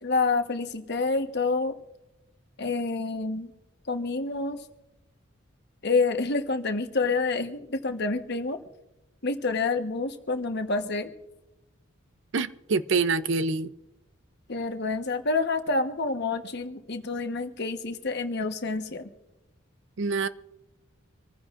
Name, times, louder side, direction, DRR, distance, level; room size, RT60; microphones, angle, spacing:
voice 1, 0.0-1.8 2.6-3.5 3.9-4.6 5.8-8.6 9.2-11.1 14.5-19.1, left 3 dB, 55° left, 1.2 m, -28 dB
voice 2, 12.3-13.7 20.0-20.3, right 4 dB, 60° right, 0.6 m, -26 dB
26.0 x 15.0 x 2.5 m
head